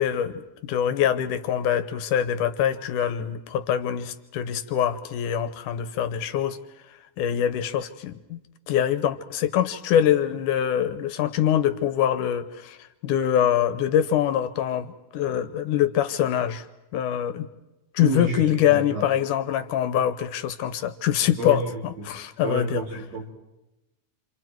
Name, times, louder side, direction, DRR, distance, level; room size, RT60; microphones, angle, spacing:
voice 1, 0.0-6.6 7.2-8.4 8.7-12.8 13.0-16.6 16.9-17.5 17.9-22.8, left 10 dB, 85° left, 11 dB, 2.5 m, -24 dB
voice 2, 18.0-18.4 18.7-19.1 21.4-21.6 22.0-22.1 22.4-23.3, right 1 dB, 60° right, -1 dB, 4.6 m, -29 dB
29.0 x 26.5 x 4.6 m, 0.97 s
omnidirectional pair, 3.6 m